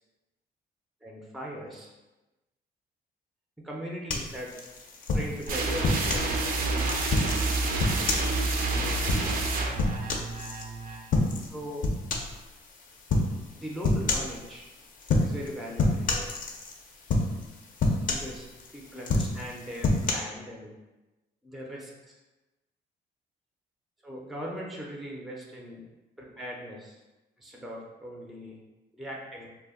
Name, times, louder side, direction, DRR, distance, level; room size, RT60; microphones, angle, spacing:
voice 1, 1.0-1.9 3.6-4.5 5.1-6.7 7.2-7.3 7.9-9.2 11.5-12.0 13.5-14.6 15.2-16.3 18.1-20.7 21.4-22.1 24.0-25.8 26.2-27.0 27.4-28.6 28.9-29.5, equal, ahead, -2 dB, 0.5 m, -40 dB
sound 1, 4.1-6.3 6.8-10.6 11.1-11.5 11.8-12.4 13.1-13.3 13.8-14.4 15.0-15.5 15.8-16.8 17.1-17.5 17.8-18.7 19.0-20.1, left 2 dB, 50° left, 0.5 m, -27 dB
sound 2, 5.5-11.1, right 3 dB, 55° right, 0.4 m, -29 dB
2.2 x 2.0 x 3.5 m, 1.1 s
cardioid pair, 80°, 17 cm